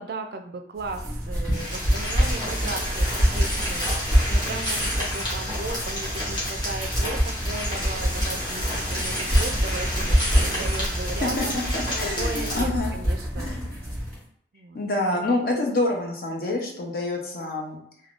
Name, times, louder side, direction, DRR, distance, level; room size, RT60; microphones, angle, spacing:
voice 1, 0.0-11.6 12.0-13.5 14.5-14.8 15.1-15.3, right 3 dB, 55° right, 6 dB, 0.3 m, -36 dB
sound 1, 0.8-14.2, equal, 10° left, 1.5 m, -26 dB
sound 2, 1.5-12.6, equal, 25° left, 0.9 m, -30 dB
voice 2, 11.7-12.9 13.3-13.7 14.7-17.8, left 2 dB, 55° left, 1 dB, 0.6 m, -27 dB
3.4 x 2.2 x 2.4 m, 0.66 s
head